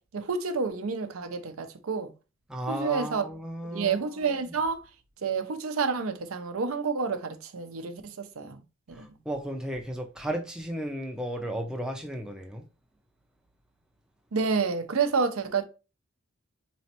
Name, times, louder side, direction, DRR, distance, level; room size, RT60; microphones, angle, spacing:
voice 1, 0.1-2.1 2.7-3.3 3.6-4.8 5.2-8.6 8.9-9.1 14.3-15.6, right 5 dB, 85° right, 0.6 m, -29 dB
voice 2, 2.5-4.5 8.9-12.6, right 1 dB, 5° right, 0.4 m, -34 dB
4.1 x 3.1 x 2.8 m
head